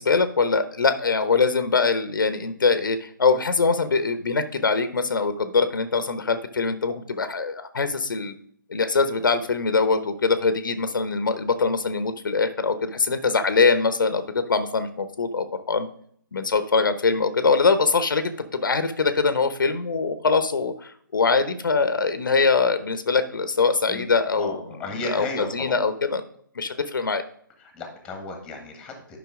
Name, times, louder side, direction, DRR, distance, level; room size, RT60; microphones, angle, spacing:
voice 1, 0.0-8.3 8.7-15.9 16.3-24.5 25.1-25.3 25.5-26.2 26.5-27.2, left 4 dB, 70° left, 10 dB, 0.9 m, -23 dB
voice 2, 24.3-25.8 27.6-29.2, left 2 dB, 10° left, 4 dB, 1.5 m, -34 dB
10.5 x 5.6 x 3.7 m, 0.64 s
figure-of-eight pair, 150°, 11 cm